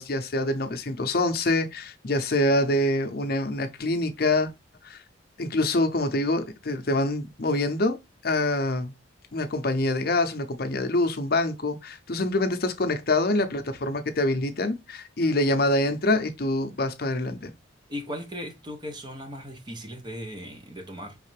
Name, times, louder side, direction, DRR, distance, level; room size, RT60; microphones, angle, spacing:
voice 1, 0.0-4.5 4.8-5.0 5.4-8.0 8.2-8.9 9.3-17.5, left 2 dB, 50° left, 0.6 m, -25 dB
voice 2, 17.9-21.2, equal, 25° right, 0.7 m, -37 dB
5.0 x 3.3 x 3.2 m
head